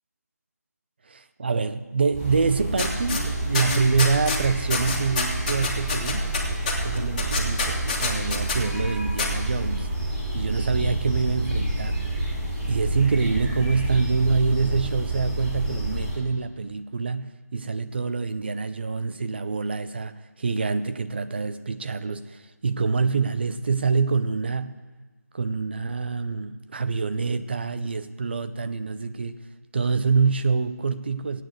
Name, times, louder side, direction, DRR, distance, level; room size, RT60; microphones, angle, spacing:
voice 1, 1.1-6.3 6.8-9.9 10.3-12.0 12.7-24.8 25.3-29.4 29.7-31.4, right 4 dB, 35° right, 12 dB, 0.8 m, -26 dB
sound 1, 2.1-16.1, right 1 dB, 15° right, 6.1 m, -29 dB
sound 2, 2.8-3.2 3.5-4.4 4.7-8.6 9.2-9.3, left 4 dB, 25° left, 2.2 m, -27 dB
17.0 x 9.3 x 7.9 m, 1.3 s
figure-of-eight pair, 165°, 9 cm